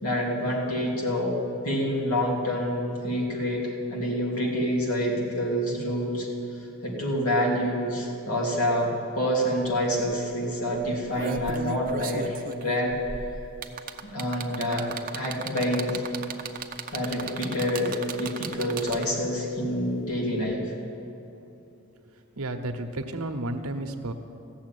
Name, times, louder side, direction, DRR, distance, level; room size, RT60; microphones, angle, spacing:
voice 1, 0.0-1.3 1.6-6.3 6.8-12.9 14.0-14.9 15.1-16.0 16.9-17.9 18.2-20.6, equal, 85° left, -3 dB, 2.9 m, -27 dB
sound 1, 9.6-9.7 10.0-10.3 10.9-19.3 20.5-20.6, right 5 dB, 40° right, 0.6 m, -36 dB
voice 2, 22.4-24.1, right 1 dB, 85° right, 6 dB, 0.9 m, -32 dB
15.0 x 7.2 x 9.1 m, 2.9 s
head